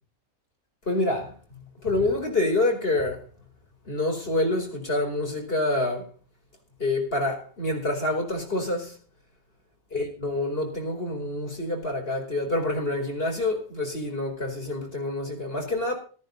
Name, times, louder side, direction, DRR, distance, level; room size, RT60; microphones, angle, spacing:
voice 1, 0.9-1.4 1.8-3.2 3.8-6.1 6.8-9.0 9.9-15.9, left 2 dB, 40° left, 5.0 m, -27 dB
15.0 x 14.0 x 4.0 m
omnidirectional pair, 1.4 m